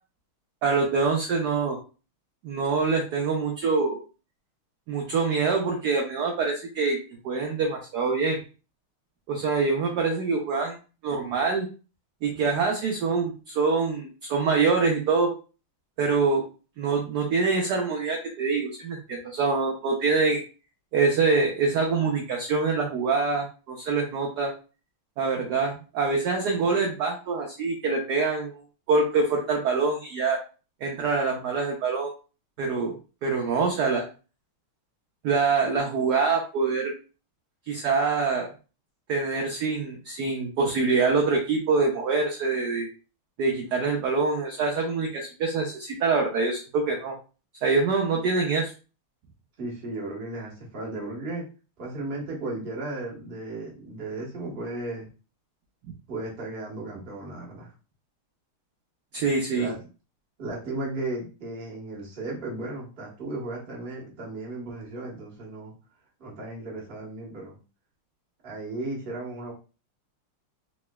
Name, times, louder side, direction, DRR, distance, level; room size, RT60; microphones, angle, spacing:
voice 1, 0.6-1.8 2.4-4.0 4.9-7.0 7.2-8.4 9.3-10.8 11.0-11.7 12.2-15.3 16.0-16.4 16.8-20.4 20.9-24.5 25.2-28.6 28.9-30.4 30.8-32.1 32.6-32.9 33.2-34.1 35.2-36.9 37.7-38.5 39.1-42.9 43.4-47.1 47.6-48.7 59.1-59.7, right 4 dB, 75° right, 1 dB, 0.9 m, -25 dB
voice 2, 49.6-51.4 51.8-55.1 56.1-57.7 59.5-59.8 60.4-65.7 66.2-67.6 68.4-69.5, right 2 dB, 40° right, -2 dB, 0.9 m, -35 dB
3.8 x 3.0 x 2.2 m, 0.35 s
omnidirectional pair, 2.4 m